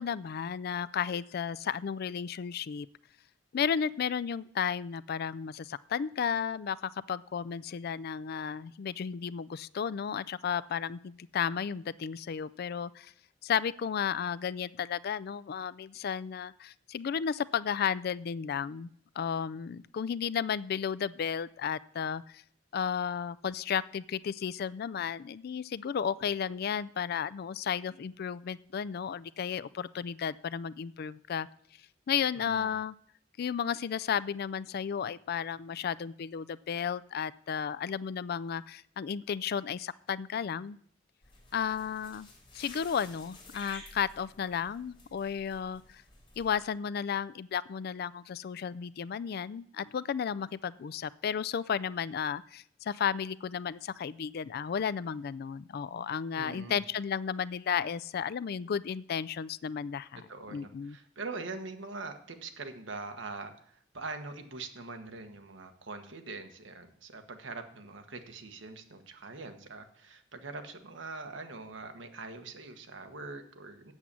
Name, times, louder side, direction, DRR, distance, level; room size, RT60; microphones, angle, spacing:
voice 1, 0.0-2.9 3.5-13.1 13.4-18.9 19.2-22.4 22.7-31.5 32.1-32.9 33.4-40.8 41.5-42.3 42.6-46.0 46.4-60.2 60.5-61.0, left 7 dB, 55° left, 18 dB, 0.4 m, -33 dB
voice 2, 32.3-32.7 56.3-56.8 60.3-73.9, right 3 dB, 80° right, 7 dB, 1.3 m, -43 dB
sound 1, 41.2-46.6, left 2 dB, 30° left, 3.4 m, -52 dB
8.0 x 7.4 x 8.4 m, 0.65 s
head